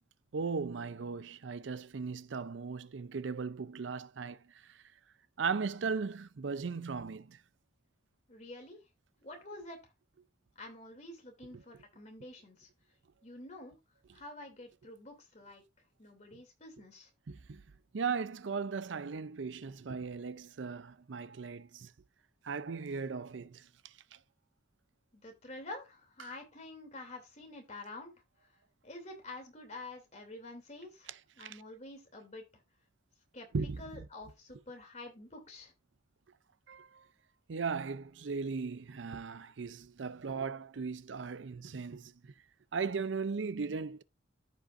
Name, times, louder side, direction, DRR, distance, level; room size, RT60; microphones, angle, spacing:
voice 1, 0.3-4.4 5.4-7.4 11.5-11.6 17.3-17.6 17.9-21.9 22.4-23.6 31.4-31.6 33.5-33.8 36.7-37.0 37.5-42.1 42.7-44.0, right 5 dB, 80° right, 0.5 m, -37 dB
voice 2, 8.3-8.8 9.2-9.8 10.6-12.7 13.2-13.8 14.1-15.6 16.0-17.1 25.1-28.1 28.8-32.4 33.3-33.5 33.8-35.7, left 2 dB, 40° left, 2.8 m, -48 dB
14.0 x 5.4 x 2.5 m
head